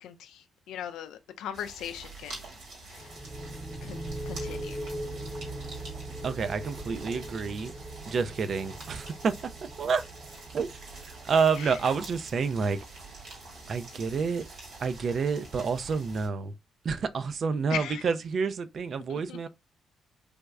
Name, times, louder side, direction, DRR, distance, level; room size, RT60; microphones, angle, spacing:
voice 1, 0.0-2.4 2.8-3.2 3.8-4.9 11.6-11.8 17.7-18.0 19.1-19.5, left 10 dB, 80° left, 0.4 m, -39 dB
sound 1, 1.5-16.3, right 3 dB, 75° right, 1.8 m, -46 dB
sound 2, 3.0-14.5, right 1 dB, 5° right, 0.5 m, -41 dB
voice 2, 6.2-7.7 8.1-9.3 9.8-10.0 10.5-10.7 11.0-12.8 13.7-14.4 14.8-16.5 16.8-19.5, right 5 dB, 60° right, 0.4 m, -28 dB
3.4 x 3.0 x 2.2 m
supercardioid pair, 50°, 0 cm